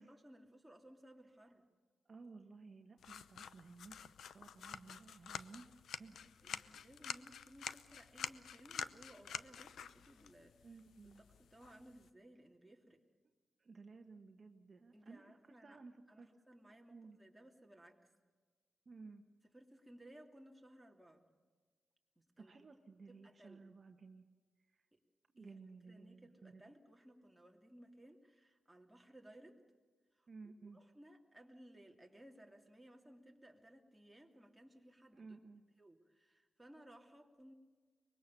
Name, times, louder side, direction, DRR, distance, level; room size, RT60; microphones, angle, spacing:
voice 1, 0.0-1.6 4.6-4.7 6.1-10.7 11.0-13.0 14.9-15.8 16.1-18.1 19.5-21.2 22.2-22.5 23.1-23.6 24.9-25.0 25.4-29.6 30.1-30.3 30.7-35.4 35.8-37.5, right 1 dB, 5° right, 1 dB, 2.9 m, -60 dB
voice 2, 2.0-6.2 10.6-11.2 13.6-16.3 16.9-17.2 18.8-19.2 22.4-24.2 24.7-24.9 25.3-26.6 30.3-30.8 35.1-35.6, right 4 dB, 45° right, 4 dB, 1.3 m, -56 dB
sound 1, 3.0-12.1, left 8 dB, 85° left, 0.7 m, -49 dB
24.0 x 21.5 x 6.9 m, 1.5 s
cardioid pair, 90°, 0 cm